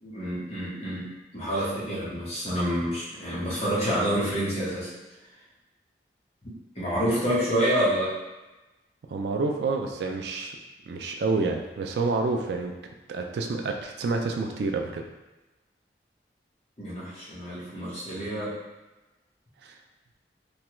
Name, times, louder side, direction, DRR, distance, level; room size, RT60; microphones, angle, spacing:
voice 1, 0.0-4.9 6.7-8.1 16.8-18.5, equal, 35° left, -9 dB, 1.0 m, -28 dB
voice 2, 9.1-10.6 10.8-12.7 13.1-15.0 19.6-19.7, right 3 dB, 70° right, 2 dB, 0.3 m, -28 dB
3.2 x 2.3 x 3.0 m, 1.1 s
head